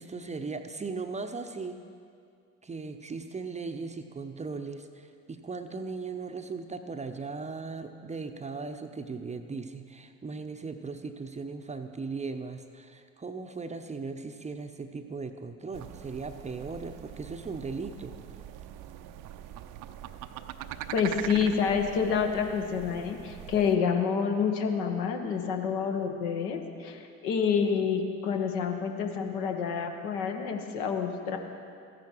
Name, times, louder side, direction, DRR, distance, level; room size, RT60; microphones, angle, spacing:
voice 1, 0.0-1.8 2.6-18.2, right 4 dB, 20° right, 7 dB, 0.7 m, -38 dB
sound 1, 15.7-23.8, right 11 dB, 55° right, 0.6 m, -43 dB
voice 2, 20.9-31.4, left 6 dB, 65° left, 4 dB, 1.3 m, -28 dB
14.5 x 10.5 x 4.5 m, 2.4 s
figure-of-eight pair, 55°, 38 cm